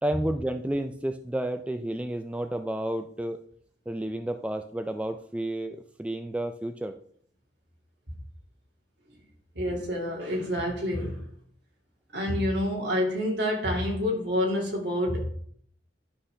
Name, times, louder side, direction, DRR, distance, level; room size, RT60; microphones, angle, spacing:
voice 1, 0.0-3.4 3.9-6.9, right 1 dB, 5° right, 7 dB, 0.3 m, -31 dB
voice 2, 9.5-11.2 12.1-15.3, left 1 dB, 65° right, -1 dB, 2.4 m, -28 dB
11.0 x 5.6 x 3.3 m, 0.62 s
head